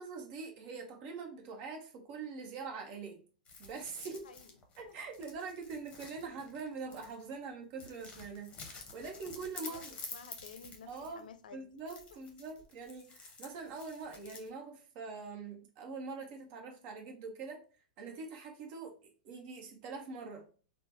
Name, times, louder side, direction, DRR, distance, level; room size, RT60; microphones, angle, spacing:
voice 1, 0.0-3.2 3.6-4.2 4.8-9.9 10.9-11.2 11.5-17.6 18.0-18.9 19.2-20.4, right 4 dB, 45° right, 3 dB, 0.8 m, -44 dB
sound 1, 3.5-7.4 7.8-11.3 11.8-14.5, left 4 dB, 25° left, 0.8 m, -50 dB
voice 2, 4.2-4.6 4.9-5.0 9.6-11.6 12.1-12.2, left 6 dB, 80° left, 9 dB, 0.4 m, -53 dB
3.2 x 2.0 x 2.6 m, 0.38 s
hypercardioid pair, 110°, 5 cm